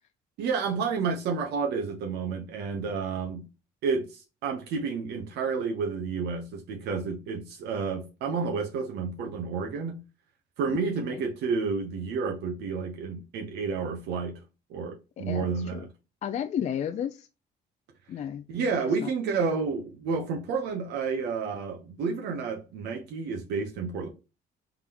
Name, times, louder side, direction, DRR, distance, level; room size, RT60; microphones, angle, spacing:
voice 1, 0.4-3.5 3.8-10.0 10.6-14.4 14.7-15.9 18.5-24.1, right 5 dB, 80° right, 0.9 m, -30 dB
voice 2, 15.2-15.8 16.2-17.3 18.1-18.4 19.0-19.1, left 9 dB, 45° left, 0.4 m, -32 dB
3.8 x 3.5 x 2.9 m
cardioid pair, 110°, 17 cm